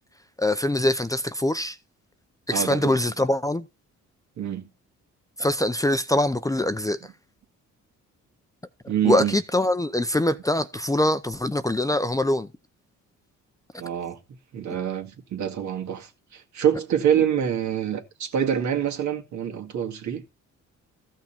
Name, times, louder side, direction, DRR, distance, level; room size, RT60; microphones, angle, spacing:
voice 1, 0.4-1.8 2.5-3.6 5.4-7.0 9.0-12.5, left 1 dB, 10° left, 0.6 m, -23 dB
voice 2, 2.5-3.0 4.4-4.7 8.9-9.3 13.8-14.2 14.5-20.2, right 9 dB, 70° right, 2.0 m, -26 dB
14.5 x 5.9 x 4.4 m
cardioid pair, 90°, 30 cm